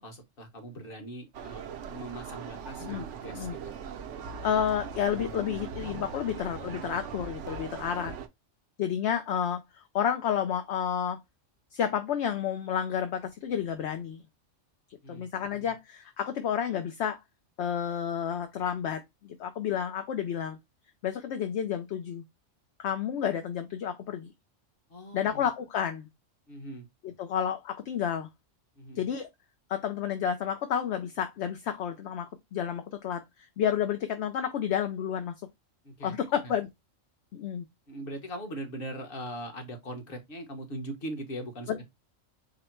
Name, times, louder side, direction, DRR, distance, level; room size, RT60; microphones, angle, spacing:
voice 1, 0.0-3.7 15.0-15.7 24.9-25.4 26.5-26.9 28.8-29.1 35.8-36.5 37.9-41.8, right 1 dB, 45° left, 1.3 m, -41 dB
sound 1, 1.3-8.3, right 6 dB, 70° right, 0.9 m, -40 dB
voice 2, 4.4-8.1 8.8-11.2 11.7-14.2 15.1-17.2 17.6-20.6 21.0-22.2 22.8-24.3 25.1-26.1 27.0-28.3 29.0-29.3 29.7-32.3 32.5-33.2 33.6-35.3 36.0-36.7 37.3-37.6 41.7-41.8, left 8 dB, 65° left, 0.9 m, -30 dB
4.9 x 2.1 x 4.4 m
omnidirectional pair, 1.3 m